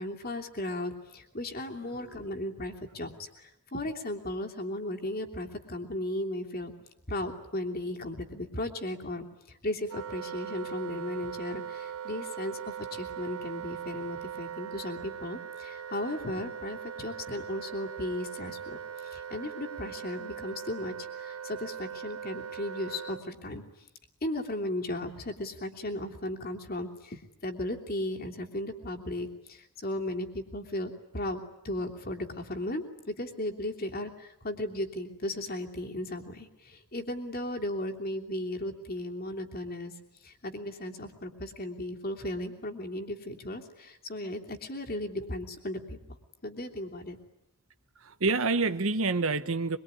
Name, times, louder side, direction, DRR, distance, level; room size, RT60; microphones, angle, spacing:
voice 1, 0.0-6.7 7.1-23.6 24.2-39.9 40.2-46.2 46.4-47.2, left 1 dB, 40° left, 3 dB, 3.1 m, -36 dB
Wind instrument woodwind instrument, 9.9-23.2, right 8 dB, 85° right, 1.3 m, -40 dB
voice 2, 48.0-49.8, right 3 dB, 65° right, 10 dB, 1.1 m, -28 dB
24.0 x 23.5 x 9.8 m, 0.85 s
head